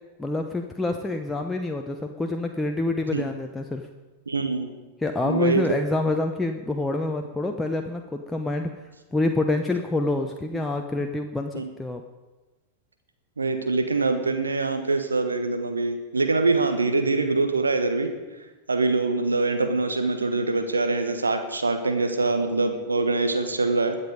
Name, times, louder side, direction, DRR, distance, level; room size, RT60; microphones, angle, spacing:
voice 1, 0.2-3.9 5.0-8.7 9.1-12.0, left 2 dB, 10° left, 4 dB, 0.8 m, -27 dB
voice 2, 4.3-4.7 5.2-5.6 11.5-11.6 13.4-18.1 18.7-24.0, right 3 dB, 75° right, 7 dB, 1.3 m, -24 dB
21.0 x 7.3 x 5.2 m, 1.2 s
figure-of-eight pair, 90°, 0 cm